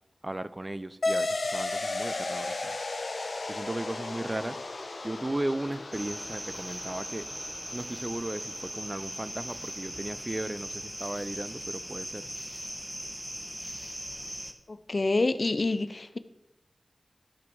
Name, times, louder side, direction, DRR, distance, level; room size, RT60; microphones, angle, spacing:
voice 1, 0.2-2.8 3.5-4.6 5.0-7.3 7.7-12.3, right 1 dB, 30° right, 0.5 m, -36 dB
sound 1, 1.0-10.0, left 2 dB, 75° left, 1.0 m, -35 dB
sound 2, 5.9-14.5, equal, 10° right, 1.1 m, -39 dB
voice 2, 14.7-16.2, left 2 dB, 60° left, 0.6 m, -27 dB
12.5 x 5.2 x 6.1 m
cardioid pair, 45°, 0 cm